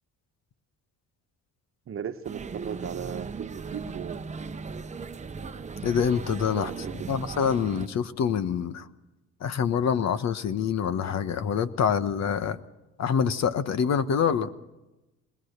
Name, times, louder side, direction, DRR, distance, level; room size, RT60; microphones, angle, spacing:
voice 1, 1.9-4.2 6.5-7.2, right 8 dB, 45° right, 8 dB, 1.2 m, -36 dB
sound 1, 2.2-7.9, right 5 dB, 25° right, 0.9 m, -37 dB
voice 2, 5.8-8.9 9.4-12.6 13.0-14.5, left 7 dB, 60° left, 13 dB, 1.2 m, -26 dB
20.5 x 20.0 x 6.7 m, 1.0 s
cardioid pair, 110°, 30 cm